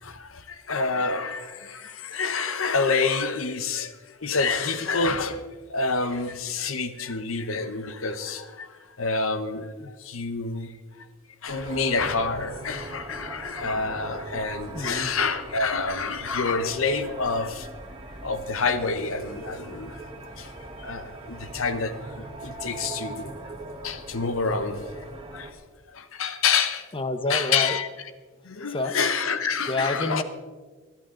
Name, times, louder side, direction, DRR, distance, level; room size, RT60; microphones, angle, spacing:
voice 1, 0.0-5.4 5.7-10.7 11.0-11.1 11.4-17.7 18.2-23.3 23.8-24.9 25.3-25.6 25.9-26.9 27.3-27.9 28.4-30.2, left 4 dB, 70° left, 11 dB, 1.0 m, -28 dB
sound 1, 11.5-25.5, right 2 dB, 25° right, 1.4 m, -41 dB
voice 2, 14.7-15.1 26.9-27.8 28.7-29.0 29.7-30.2, left 2 dB, 25° left, 10 dB, 1.0 m, -28 dB
22.0 x 12.0 x 3.9 m, 1.4 s
head